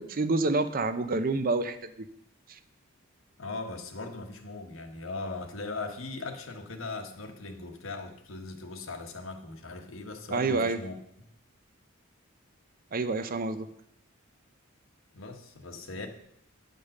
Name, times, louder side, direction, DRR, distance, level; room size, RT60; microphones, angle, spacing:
voice 1, 0.0-2.1 2.5-2.6 10.3-10.8 12.9-13.7, right 3 dB, 45° right, 11 dB, 0.6 m, -28 dB
voice 2, 3.4-11.0 15.1-16.1, left 3 dB, 80° left, 5 dB, 1.3 m, -39 dB
9.7 x 5.3 x 6.5 m, 0.75 s
head